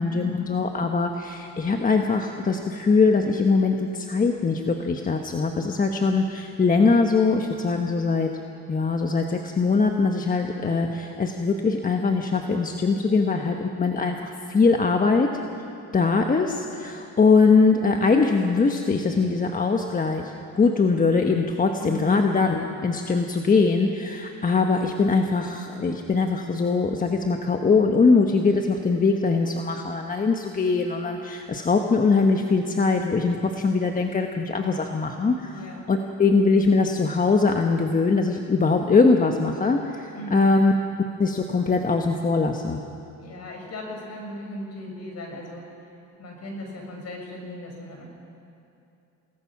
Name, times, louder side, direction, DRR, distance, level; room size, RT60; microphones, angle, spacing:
voice 1, 0.0-8.4 8.7-14.2 14.5-15.3 15.9-40.7 41.2-42.8, left 4 dB, 25° left, 3 dB, 1.2 m, -22 dB
voice 2, 13.3-13.7 21.8-22.2 35.5-35.8 40.1-40.5 43.2-45.7 46.2-48.0, left 1 dB, 50° left, 1 dB, 6.2 m, -37 dB
28.5 x 19.5 x 6.0 m, 2.7 s
cardioid pair, 115°, 34 cm